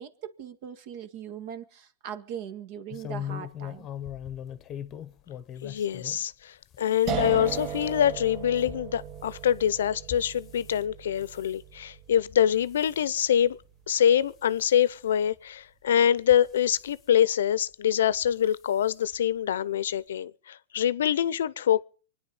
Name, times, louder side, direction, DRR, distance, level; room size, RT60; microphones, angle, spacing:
voice 1, 0.0-3.9, right 8 dB, 50° right, 1.7 m, -40 dB
sound 1, 2.9-6.2 6.7-10.8 11.2-11.6 12.1-12.4 12.7-13.0 13.6-13.7 14.1-14.2 15.3-15.4 16.2-17.0 18.1-18.3 18.7-18.8 19.1-19.2, left 10 dB, 25° left, 1.0 m, -41 dB
voice 2, 5.6-13.6 13.9-21.8, left 10 dB, 80° left, 0.7 m, -25 dB
sound 2, 7.1-14.0, right 8 dB, 35° right, 1.1 m, -37 dB
25.0 x 10.0 x 5.3 m
hypercardioid pair, 135°, 0 cm